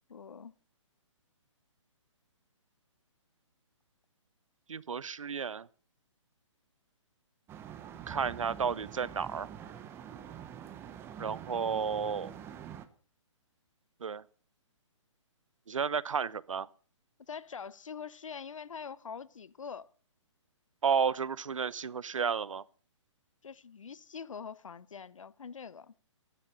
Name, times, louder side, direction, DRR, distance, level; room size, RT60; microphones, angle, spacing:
voice 1, 0.1-0.5 17.3-19.9 23.4-25.9, left 6 dB, 85° left, 0.8 m, -44 dB
voice 2, 4.7-5.7 8.1-9.5 11.2-12.3 14.0-14.2 15.7-16.7 20.8-22.6, right 6 dB, 85° right, 0.8 m, -32 dB
sound 1, 7.5-12.9, right 9 dB, 15° right, 1.0 m, -46 dB
13.0 x 12.0 x 6.6 m
hypercardioid pair, 150°, 16 cm